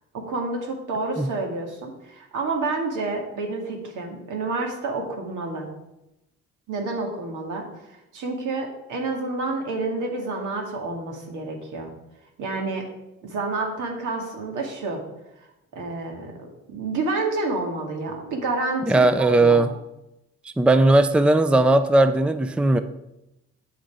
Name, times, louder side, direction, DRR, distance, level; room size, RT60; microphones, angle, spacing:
voice 1, 0.1-5.7 6.7-7.6 8.1-11.9 12.4-12.8 13.2-15.0 15.7-19.7, right 3 dB, 80° right, 2 dB, 2.2 m, -29 dB
voice 2, 18.8-19.7 20.6-22.8, right 2 dB, 5° right, 11 dB, 0.4 m, -18 dB
8.0 x 6.4 x 4.9 m, 0.89 s
cardioid pair, 90°, 30 cm